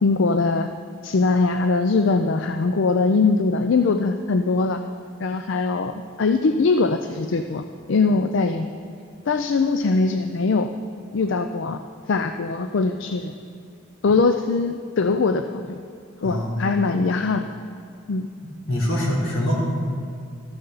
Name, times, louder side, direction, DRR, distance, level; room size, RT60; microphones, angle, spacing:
voice 1, 0.0-0.7 1.0-4.8 5.2-8.7 9.3-10.7 11.1-11.8 12.1-13.3 14.0-15.8 16.2-17.5 18.1-18.3, left 3 dB, 65° left, 8 dB, 0.4 m, -21 dB
voice 2, 16.2-16.7 18.7-19.5, left 1 dB, 85° left, -5 dB, 3.4 m, -24 dB
14.0 x 12.0 x 4.0 m, 2.4 s
head